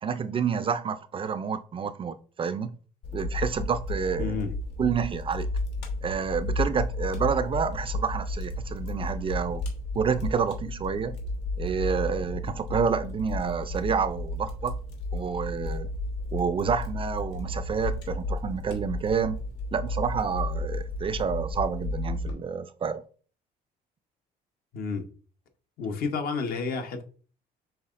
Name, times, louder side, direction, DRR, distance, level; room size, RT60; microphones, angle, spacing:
voice 1, 0.0-2.8 3.1-4.4 4.8-5.5 6.0-9.6 9.9-11.2 11.6-14.8 15.1-15.9 16.3-19.4 19.7-23.0, right 6 dB, 30° right, 0.4 m, -29 dB
Fire, 3.0-22.3, left 2 dB, 85° left, 1.4 m, -33 dB
voice 2, 4.2-4.5 24.7-25.1 25.8-27.0, left 4 dB, 65° left, 1.0 m, -30 dB
5.7 x 3.7 x 2.5 m
cardioid pair, 110°, 17 cm